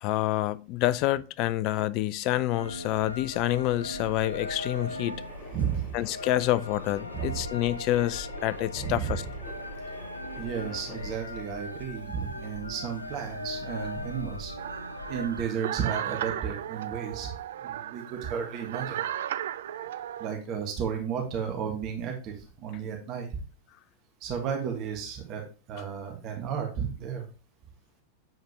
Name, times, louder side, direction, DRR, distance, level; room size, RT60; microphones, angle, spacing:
voice 1, 0.0-5.2 5.9-9.2, left 15 dB, 40° left, 0.4 m, -27 dB
sound 1, 2.5-15.4, left 1 dB, 90° left, 0.7 m, -39 dB
sound 2, 4.3-11.2, left 2 dB, 25° left, 1.5 m, -48 dB
voice 2, 5.5-6.0 7.1-7.5 8.7-9.3 10.4-14.5 15.1-17.3 17.6-19.0 20.2-23.4 24.2-27.2, right 7 dB, 35° right, 1.5 m, -33 dB
sound 3, 14.6-20.3, right 11 dB, 60° right, 0.3 m, -35 dB
7.8 x 5.0 x 2.9 m
figure-of-eight pair, 90°, 0 cm